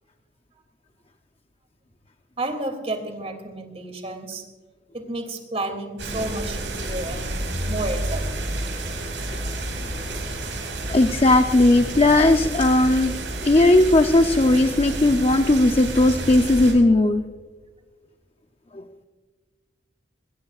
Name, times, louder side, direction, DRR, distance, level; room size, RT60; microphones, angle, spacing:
voice 1, 2.4-4.4 4.9-7.3 7.7-8.6, right 2 dB, 35° right, 5 dB, 2.7 m, -31 dB
sound 1, 6.0-16.7, right 1 dB, 85° right, 4.9 m, -30 dB
voice 2, 10.9-13.2 13.4-17.2 18.7-18.8, left 2 dB, 35° left, 7 dB, 0.6 m, -17 dB
21.5 x 21.0 x 2.5 m, 1.4 s
head